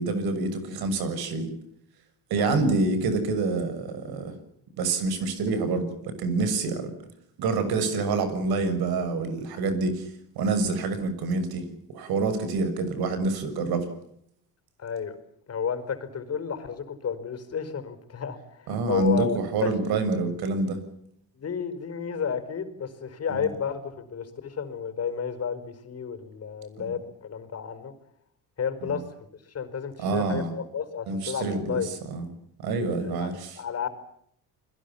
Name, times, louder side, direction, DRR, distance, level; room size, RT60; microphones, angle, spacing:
voice 1, 0.0-1.5 2.3-4.4 4.8-6.9 7.4-10.1 10.3-13.9 18.7-20.8 23.3-23.5 26.8-26.9 28.8-29.0 30.0-30.5 31.1-31.8 32.1-32.3 32.6-33.6, right 3 dB, 80° right, 11 dB, 6.8 m, -27 dB
voice 2, 14.8-15.2 15.5-19.7 21.3-27.9 28.6-29.1 29.3-31.9 33.0-33.9, left 7 dB, 40° left, 10 dB, 5.1 m, -32 dB
30.0 x 22.0 x 7.2 m, 0.71 s
cardioid pair, 110°, 37 cm